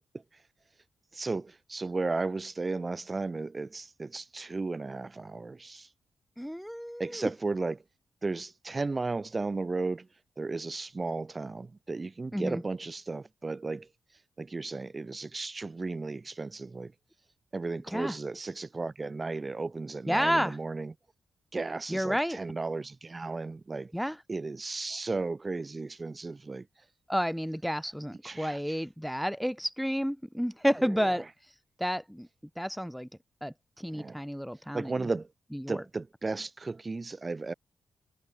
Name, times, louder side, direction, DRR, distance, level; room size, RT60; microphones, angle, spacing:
voice 1, 1.1-5.9 7.0-7.8 8.2-10.1 10.4-13.9 14.4-16.9 17.5-20.9 21.5-23.9 24.3-26.7 28.2-28.6 31.0-31.1 33.9-34.2 34.7-35.3 35.7-37.5, right 3 dB, 35° right, 5.8 m, -34 dB
voice 2, 6.4-7.3 12.3-12.6 17.9-18.2 20.1-20.6 21.9-22.4 23.9-24.2 27.1-32.3 32.6-33.1 33.4-35.1 35.5-35.8, equal, ahead, 2.5 m, -31 dB
cardioid pair, 65°, 0 cm